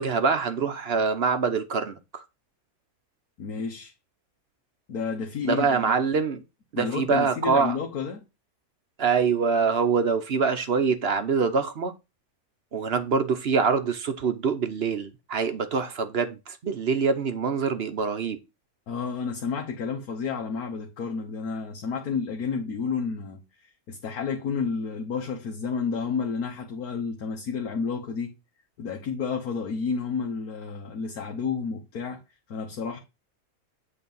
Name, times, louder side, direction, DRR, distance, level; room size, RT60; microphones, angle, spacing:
voice 1, 0.0-2.2 5.4-6.4 6.7-7.8 9.0-11.9 12.7-18.4, right 5 dB, 50° right, 0.9 m, -25 dB
voice 2, 3.4-3.9 4.9-5.9 6.7-8.2 18.9-28.3 28.8-32.2 32.5-33.0, left 5 dB, 85° left, 1.6 m, -31 dB
8.4 x 3.5 x 5.4 m
omnidirectional pair, 1.5 m